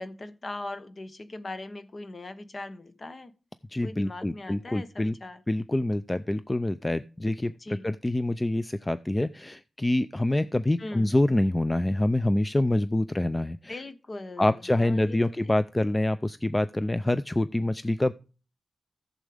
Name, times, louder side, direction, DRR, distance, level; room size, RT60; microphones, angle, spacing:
voice 1, 0.0-3.3 3.8-5.4 7.6-7.9 10.8-11.1 13.6-15.6, left 2 dB, 40° left, 1.1 m, -40 dB
voice 2, 3.7-5.1 5.5-13.8 14.4-18.1, left 1 dB, 15° left, 0.4 m, -26 dB
14.5 x 7.3 x 3.4 m
wide cardioid pair, 110°, 0 cm